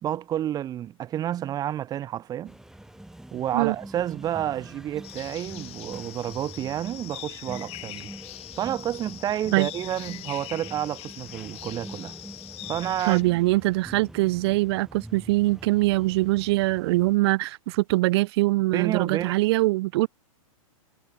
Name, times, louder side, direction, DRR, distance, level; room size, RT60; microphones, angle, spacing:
voice 1, 0.0-2.5 3.3-8.1 8.6-12.1 12.7-13.2 18.7-19.3, right 11 dB, 20° right, 0.7 m, -30 dB
sound 1, 2.4-17.2, right 1 dB, 5° right, 4.1 m, -45 dB
sound 2, 5.0-13.2, left 18 dB, 35° left, 6.0 m, -42 dB
voice 2, 13.0-20.1, right 20 dB, 50° right, 0.5 m, -23 dB
hypercardioid pair, 135°, 18 cm